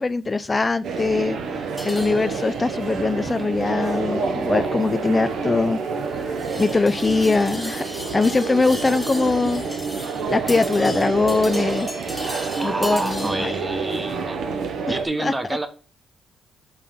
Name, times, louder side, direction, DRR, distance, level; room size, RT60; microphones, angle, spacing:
voice 1, 0.0-1.4 1.8-5.8 6.2-7.9 8.1-9.6 10.3-11.9 12.6-13.5 14.9-15.3, left 3 dB, 25° left, 0.4 m, -22 dB
sound 1, 0.8-15.1, right 4 dB, 70° right, 0.9 m, -28 dB
sound 2, 1.8-13.6, left 1 dB, 5° left, 0.9 m, -38 dB
voice 2, 12.6-14.4 14.9-15.7, right 2 dB, 20° right, 1.0 m, -28 dB
5.5 x 3.8 x 5.4 m
cardioid pair, 90°, 0 cm